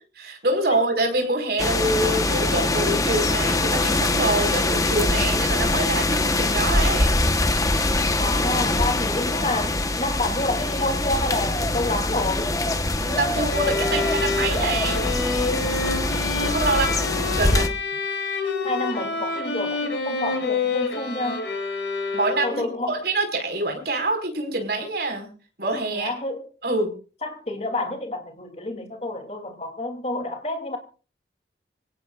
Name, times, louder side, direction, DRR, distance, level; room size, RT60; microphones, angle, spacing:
voice 1, 0.2-7.1 13.0-15.1 16.4-16.9 17.3-17.7 22.1-22.6 22.9-25.3 25.6-26.1 26.6-26.9, right 2 dB, 60° right, 5.1 m, -25 dB
sound 1, 1.6-17.7, left 2 dB, 20° left, 1.1 m, -23 dB
voice 2, 8.2-12.6 18.6-21.5 22.4-22.9 25.9-26.4 27.2-30.8, left 2 dB, 35° left, 2.9 m, -29 dB
sound 2, 13.5-22.7, left 4 dB, 70° left, 6.5 m, -28 dB
26.0 x 17.5 x 2.5 m
head